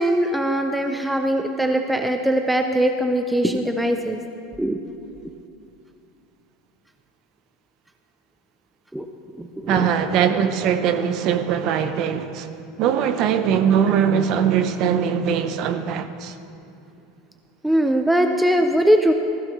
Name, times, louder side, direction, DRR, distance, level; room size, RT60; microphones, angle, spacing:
voice 1, 0.0-4.2 4.6-4.8 8.9-9.1 9.3-9.9 17.6-19.1, right 1 dB, 5° right, 0.4 m, -21 dB
voice 2, 9.7-12.5 12.8-16.4, right 8 dB, 40° right, 0.7 m, -21 dB
19.5 x 15.5 x 3.1 m
supercardioid pair, 175°, 0 cm